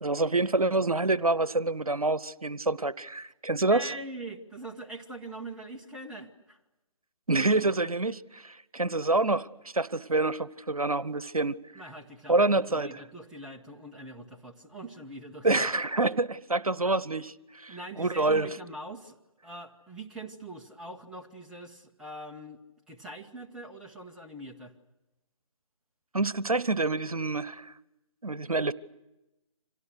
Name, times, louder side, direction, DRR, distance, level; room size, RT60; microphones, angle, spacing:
voice 1, 0.0-3.9 7.3-11.6 12.3-13.0 15.4-18.5 26.1-27.7 28.2-28.7, right 2 dB, 90° right, 20 dB, 0.9 m, -27 dB
voice 2, 3.7-6.6 11.7-12.4 12.7-15.7 17.7-19.2 19.4-24.7, right 2 dB, 5° right, -1 dB, 1.5 m, -43 dB
30.0 x 26.5 x 6.5 m, 0.98 s
figure-of-eight pair, 145°, 18 cm